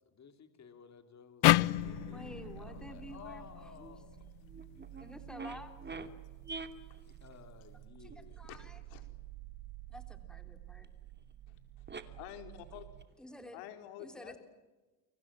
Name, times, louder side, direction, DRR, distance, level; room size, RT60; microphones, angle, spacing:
voice 1, 0.1-4.1 5.9-6.2 7.0-8.4 12.0-12.2, left 7 dB, 35° left, 7 dB, 3.3 m, -55 dB
sound 1, 1.4-4.7, left 19 dB, 60° left, 0.8 m, -31 dB
sound 2, 1.8-13.1, right 16 dB, 60° right, 1.2 m, -51 dB
voice 2, 2.1-3.9 5.0-5.7 8.0-8.8 9.9-10.9 13.2-13.6 14.0-14.4, equal, ahead, 6 dB, 3.6 m, -50 dB
sound 3, 4.1-4.2 4.5-6.1 6.4-7.3 8.0-8.2 10.8-10.9 11.1-11.2 11.9-12.0 12.5-13.1, right 4 dB, 20° right, 2.7 m, -45 dB
voice 3, 8.5-9.0 11.5-13.0 13.5-14.4, left 11 dB, 75° left, 7 dB, 4.7 m, -50 dB
29.5 x 25.0 x 7.6 m, 1.2 s
supercardioid pair, 105°, 49 cm